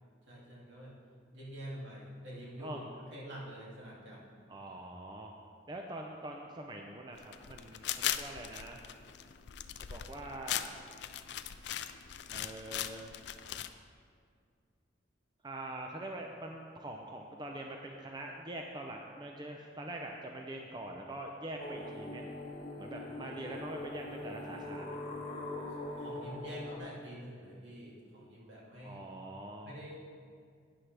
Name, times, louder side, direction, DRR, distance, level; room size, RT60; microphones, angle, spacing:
voice 1, 0.3-0.9 1.3-2.8 3.1-4.3 23.6-23.7 24.1-24.3 26.0-29.0 29.6-30.1, equal, 70° right, -5 dB, 2.5 m, -47 dB
voice 2, 4.5-5.3 5.7-8.8 9.9-10.7 12.3-13.1 15.4-22.3 22.8-25.0 28.8-29.7, right 1 dB, 25° right, 1 dB, 0.5 m, -44 dB
sound 1, 7.2-13.7, left 11 dB, 60° left, 0.4 m, -39 dB
sound 2, 21.6-26.8, left 1 dB, 30° left, 1.4 m, -42 dB
12.0 x 9.4 x 3.4 m, 2.2 s
head